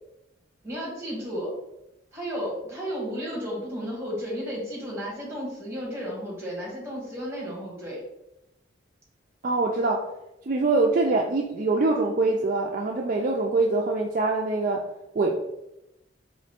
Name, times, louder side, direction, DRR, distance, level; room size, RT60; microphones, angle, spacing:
voice 1, 0.6-1.5 2.1-8.0, equal, 15° right, -4 dB, 1.5 m, -33 dB
voice 2, 9.4-10.0 10.5-14.8 15.1-15.3, right 3 dB, 45° right, 0 dB, 0.3 m, -24 dB
3.8 x 3.1 x 3.5 m, 0.89 s
head